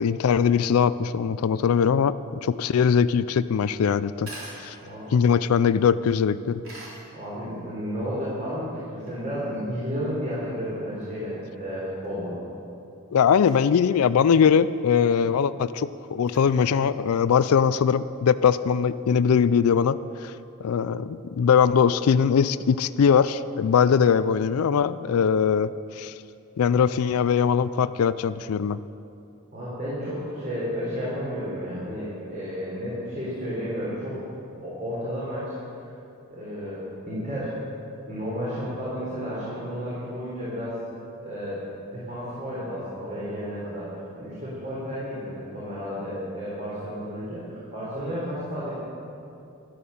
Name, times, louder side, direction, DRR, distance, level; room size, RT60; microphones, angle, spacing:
voice 1, 0.0-2.2 2.4-4.3 4.6-4.8 5.1-6.6 13.1-20.3 20.6-26.1 26.6-28.8, left 7 dB, 85° left, 15 dB, 0.4 m, -21 dB
sound 1, 3.2-17.5, right 1 dB, 75° right, 3.6 m, -49 dB
voice 2, 7.1-12.4 29.5-34.3 34.6-35.9 36.3-37.7 38.1-40.8 41.2-41.6 41.8-43.9 44.1-48.7, equal, 35° right, -8 dB, 3.7 m, -32 dB
12.5 x 12.0 x 7.0 m, 2.7 s
head